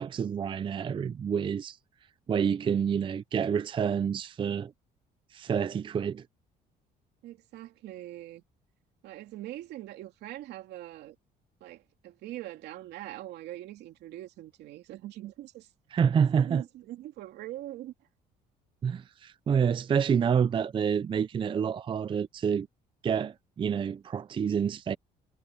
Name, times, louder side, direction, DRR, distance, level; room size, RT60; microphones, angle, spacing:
voice 1, 0.0-1.8 2.3-4.7 5.3-6.2 15.9-16.6 18.8-22.7 23.0-25.0, right 7 dB, 30° right, 0.5 m, -28 dB
voice 2, 7.2-8.4 9.0-11.2 11.6-15.7 16.4-17.9, right 14 dB, 80° right, 2.8 m, -42 dB
cardioid pair, 110°, 17 cm